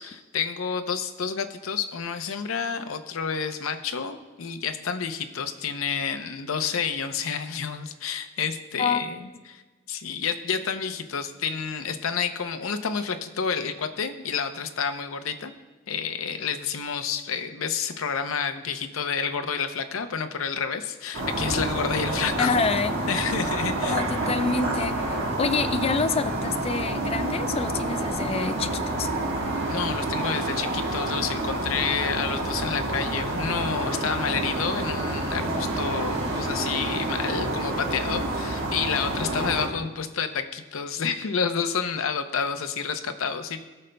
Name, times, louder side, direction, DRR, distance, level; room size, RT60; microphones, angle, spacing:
voice 1, 0.0-9.2 9.5-9.6 9.9-15.5 15.9-22.6 23.1-24.0 29.7-43.6, left 6 dB, 75° left, 8 dB, 0.6 m, -29 dB
sound 1, 21.1-39.7, right 2 dB, 60° right, 1.4 m, -28 dB
voice 2, 22.4-22.9 23.6-29.1, left 4 dB, 30° left, 11 dB, 0.4 m, -27 dB
19.0 x 6.5 x 2.2 m, 1.3 s
head